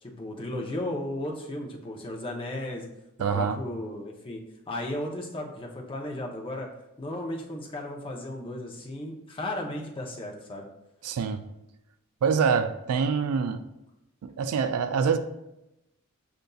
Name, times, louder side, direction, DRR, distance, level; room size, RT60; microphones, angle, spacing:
voice 1, 0.0-2.9 3.3-4.4 4.7-6.7 7.0-10.6, left 1 dB, 25° left, 0 dB, 0.6 m, -35 dB
voice 2, 3.2-3.6 11.0-11.4 12.2-13.6 14.2-15.2, right 6 dB, 80° right, 10 dB, 0.4 m, -25 dB
6.6 x 2.5 x 2.3 m, 0.90 s
head